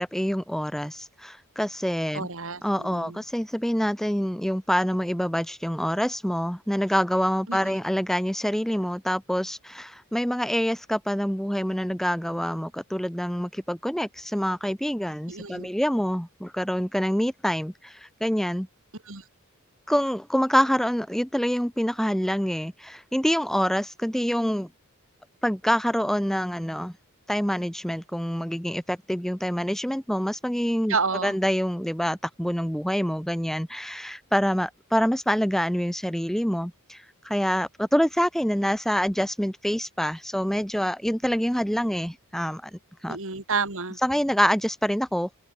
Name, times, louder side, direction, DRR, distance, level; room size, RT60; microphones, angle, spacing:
voice 1, 0.0-2.3 2.6-18.7 19.9-24.7 25.4-26.9 27.3-31.0 31.2-43.2 44.0-45.4, equal, ahead, 1.2 m, -26 dB
voice 2, 2.1-3.2 7.5-7.6 15.3-15.7 19.1-19.2 30.9-31.3 43.1-44.0, right 4 dB, 65° right, 3.4 m, -30 dB
open air
head